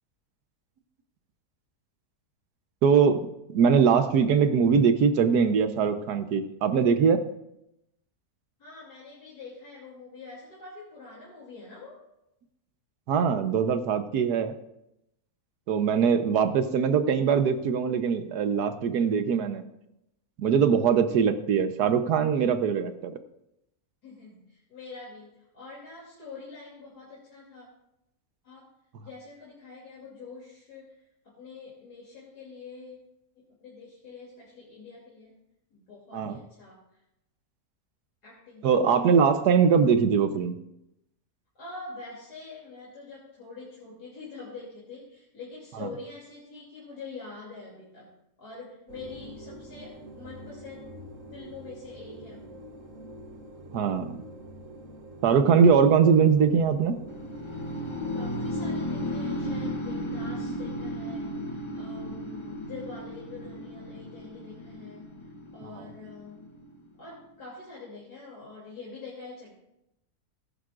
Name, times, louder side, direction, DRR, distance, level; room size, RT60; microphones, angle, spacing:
voice 1, 2.8-3.3 3.5-7.2 13.1-14.5 15.7-19.6 20.4-23.1 36.1-36.4 38.6-40.5 45.8-45.9 53.7-54.2 55.2-56.9, right 6 dB, 85° right, 9 dB, 1.4 m, -22 dB
voice 2, 8.6-12.0 24.0-27.7 28.4-28.7 29.0-31.0 31.2-33.0 33.4-35.4 35.7-36.8 38.2-39.2 41.6-48.1 48.4-52.6 58.1-66.5 67.0-69.5, left 4 dB, 85° left, -6 dB, 3.5 m, -45 dB
sound 1, 48.9-59.7, right 1 dB, 55° right, 1.5 m, -45 dB
sound 2, 57.1-67.0, equal, 25° left, 0.7 m, -35 dB
18.5 x 10.5 x 2.5 m, 0.84 s
omnidirectional pair, 1.7 m